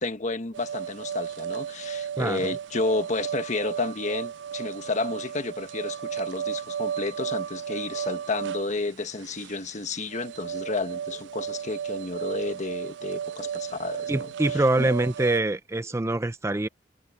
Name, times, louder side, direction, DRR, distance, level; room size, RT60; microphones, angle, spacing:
voice 1, 0.0-14.3 14.8-14.9, left 3 dB, 45° left, 1.3 m, -31 dB
sound 1, 0.5-15.4, right 8 dB, 85° right, 0.4 m, -34 dB
voice 2, 2.2-2.5 14.1-16.7, right 2 dB, 15° right, 0.5 m, -25 dB
head